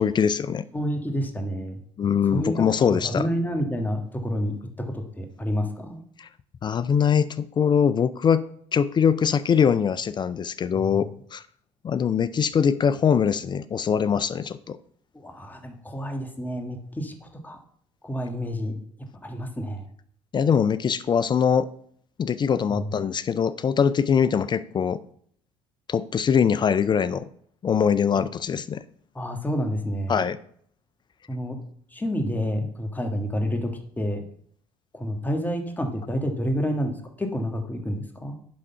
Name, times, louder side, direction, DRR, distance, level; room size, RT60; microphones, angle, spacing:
voice 1, 0.0-0.6 2.0-3.3 6.2-6.3 6.6-8.4 8.7-11.4 11.8-14.8 20.3-21.7 22.2-25.0 25.9-27.2 27.6-28.8 30.1-30.4, left 7 dB, 35° left, 16 dB, 0.4 m, -22 dB
voice 2, 0.7-1.8 2.3-2.6 2.9-6.0 10.7-10.8 15.1-17.6 18.0-18.7 19.2-19.8 22.7-22.9 29.1-30.2 31.3-31.6 31.9-34.2 34.9-38.3, equal, 15° left, 4 dB, 1.6 m, -29 dB
10.0 x 3.7 x 5.6 m, 0.62 s
hypercardioid pair, 70°, 13 cm